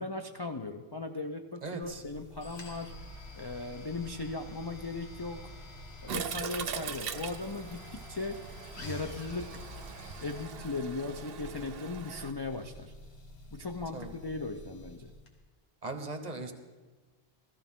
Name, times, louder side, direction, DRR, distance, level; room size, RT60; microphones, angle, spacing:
voice 1, 0.0-2.9 3.4-5.5 6.0-8.5 8.8-9.6 10.2-12.9 13.5-15.1, left 3 dB, 35° left, 5 dB, 0.4 m, -38 dB
voice 2, 1.6-2.0 13.9-14.1 15.8-16.5, right 3 dB, 40° right, 7 dB, 1.1 m, -38 dB
sound 1, 1.8-15.3, left 1 dB, 75° left, 1.8 m, -47 dB
Toilet flush, 6.1-12.3, right 8 dB, 65° right, 0.8 m, -41 dB
16.5 x 13.5 x 3.7 m, 1.3 s
omnidirectional pair, 1.1 m